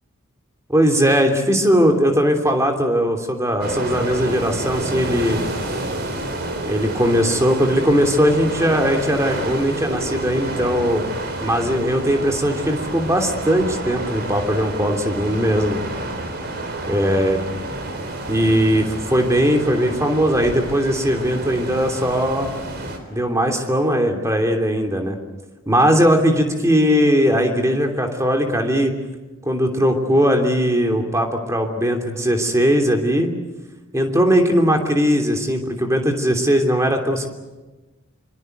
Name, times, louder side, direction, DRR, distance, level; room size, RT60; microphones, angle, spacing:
voice 1, 0.7-5.4 6.7-11.0 11.4-15.8 16.9-17.4 18.3-22.5 23.1-25.2 25.7-28.9 29.4-33.3 33.9-37.3, equal, 15° right, 4 dB, 3.1 m, -19 dB
sound 1, 3.6-23.0, right 2 dB, 50° right, 3.9 m, -29 dB
25.5 x 25.0 x 8.0 m, 1.2 s
head